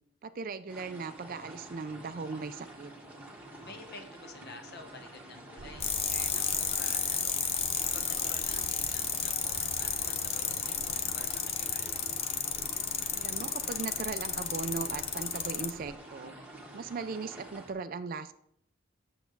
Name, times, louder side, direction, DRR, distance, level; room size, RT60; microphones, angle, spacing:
voice 1, 0.2-2.9 13.1-16.3 16.7-18.3, right 4 dB, 40° right, 12 dB, 0.4 m, -38 dB
sound 1, 0.7-17.7, right 1 dB, 5° right, 1.3 m, -48 dB
voice 2, 3.7-7.4 7.8-11.9, left 3 dB, 50° left, 5 dB, 1.1 m, -50 dB
sound 2, 5.6-16.0, right 2 dB, 70° right, 0.8 m, -49 dB
sound 3, 5.8-15.7, left 7 dB, 30° left, 0.6 m, -32 dB
8.3 x 6.9 x 3.9 m, 0.72 s
head